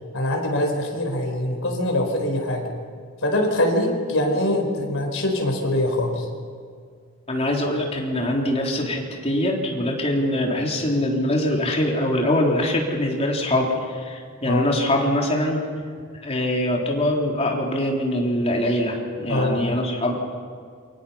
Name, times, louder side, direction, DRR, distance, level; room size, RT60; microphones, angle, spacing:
voice 1, 0.1-2.7 3.2-6.2 14.5-14.6 19.3-19.8, left 1 dB, 60° left, 2 dB, 4.8 m, -23 dB
voice 2, 7.3-15.6 16.2-20.1, left 1 dB, 30° left, -1 dB, 3.6 m, -23 dB
28.5 x 24.0 x 5.8 m, 2.1 s
head